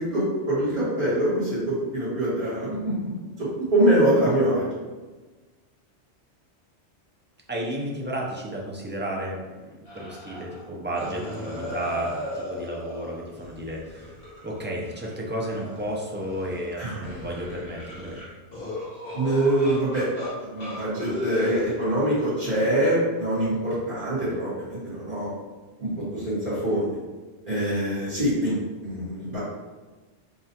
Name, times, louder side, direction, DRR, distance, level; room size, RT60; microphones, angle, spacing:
voice 1, 0.0-4.7 16.8-17.1 19.1-20.1 20.4-25.3 25.8-26.9 27.4-29.4, right 1 dB, 50° right, -10 dB, 1.6 m, -24 dB
voice 2, 7.5-9.7 9.9-14.2 14.4-18.2, right 1 dB, 20° right, -3 dB, 0.3 m, -32 dB
sound 1, 9.9-10.6 10.9-15.2 15.5-16.7 17.0-20.3 20.6-21.7, left 1 dB, 60° left, 1.4 m, -36 dB
5.3 x 2.4 x 2.8 m, 1.3 s
omnidirectional pair, 1.2 m